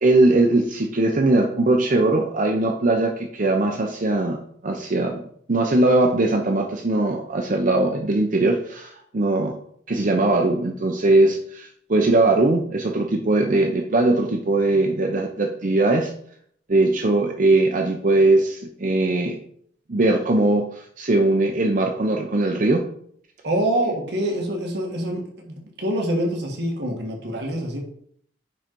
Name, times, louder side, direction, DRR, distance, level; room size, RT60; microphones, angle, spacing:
voice 1, 0.0-4.4 4.6-5.2 5.5-9.6 9.9-16.1 16.7-19.4 19.9-22.8, right 2 dB, 45° right, 2 dB, 0.7 m, -20 dB
voice 2, 23.4-27.8, right 1 dB, 65° right, 1 dB, 1.6 m, -25 dB
9.7 x 3.9 x 4.5 m, 0.65 s
head